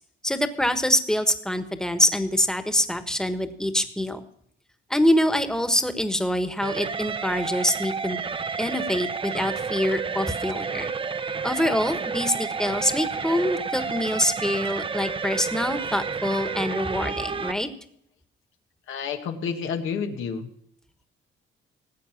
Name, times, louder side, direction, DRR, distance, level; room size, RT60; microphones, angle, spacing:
voice 1, 0.2-4.2 4.9-8.2 8.6-10.9 11.4-17.7, left 1 dB, 5° left, 9 dB, 1.4 m, -25 dB
sound 1, 6.6-17.5, right 5 dB, 25° right, 0.7 m, -30 dB
voice 2, 18.9-20.5, left 6 dB, 85° left, 5 dB, 1.6 m, -30 dB
18.0 x 8.0 x 5.9 m, 0.69 s
cardioid pair, 90°, 20 cm